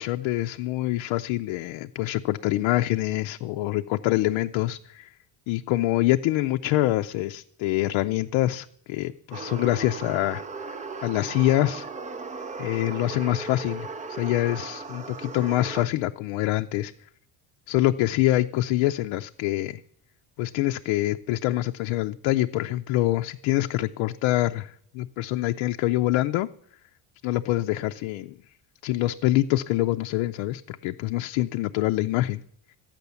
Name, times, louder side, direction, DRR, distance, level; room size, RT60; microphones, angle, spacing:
voice 1, 0.0-5.1 5.5-11.9 12.6-16.9 17.7-19.8 20.4-26.5 27.2-28.3 28.8-32.4, left 16 dB, 80° left, 7 dB, 0.6 m, -25 dB
sound 1, 9.3-15.9, right 4 dB, 15° right, 0.4 m, -37 dB
13.5 x 9.0 x 6.9 m, 0.67 s
cardioid pair, 155°, 47 cm